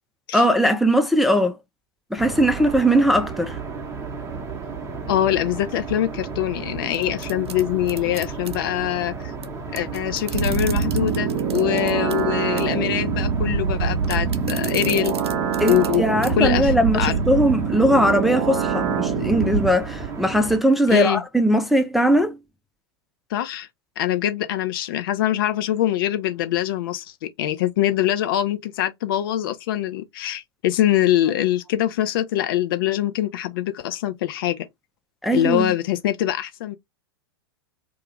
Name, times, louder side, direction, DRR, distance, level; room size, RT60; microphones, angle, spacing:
voice 1, 0.3-1.6 2.1-3.6 15.6-22.4 35.2-35.7, equal, ahead, 0.4 m, -19 dB
sound 1, 2.2-20.6, right 5 dB, 20° right, 0.8 m, -33 dB
voice 2, 5.1-9.3 9.7-15.1 15.6-16.0 16.4-17.2 20.9-21.2 23.3-23.7 24.0-34.7 35.3-36.7, left 12 dB, 60° left, 0.6 m, -23 dB
sound 2, 6.9-8.6 9.4-9.5 9.7-12.2 12.6-12.8 14.0-16.0 16.2-16.3 16.8-16.9, right 6 dB, 80° right, 0.5 m, -36 dB
sound 3, 10.3-19.7, right 6 dB, 50° right, 0.7 m, -24 dB
2.3 x 2.2 x 3.0 m
figure-of-eight pair, 95°, 13 cm